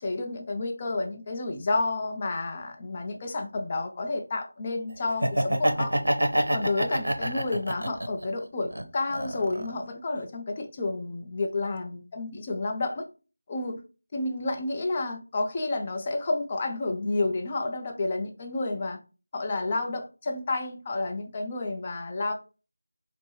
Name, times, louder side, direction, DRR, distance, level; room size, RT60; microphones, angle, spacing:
voice 1, 0.0-5.9 6.5-13.1 13.5-13.8 14.1-19.0 19.3-22.3, left 2 dB, 25° left, 0.5 m, -30 dB
Laughter, 5.1-8.2 8.7-9.8, right 1 dB, 80° right, 0.7 m, -26 dB
4.5 x 2.1 x 3.0 m
figure-of-eight pair, 170°, 0 cm